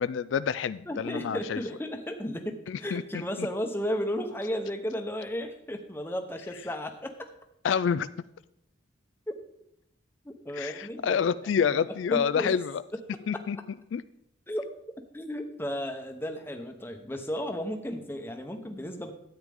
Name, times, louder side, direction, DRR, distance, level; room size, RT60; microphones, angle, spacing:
voice 1, 0.0-1.6 2.7-3.0 7.6-8.1 10.6-12.6 13.3-13.6 13.9-14.0, left 7 dB, 80° left, 15 dB, 0.3 m, -27 dB
voice 2, 0.9-7.3 9.3-9.4 10.2-12.5 12.9-13.0 13.3-13.4 14.5-14.7 15.0-19.1, equal, 10° left, 5 dB, 0.9 m, -34 dB
12.5 x 8.9 x 3.6 m, 0.77 s
head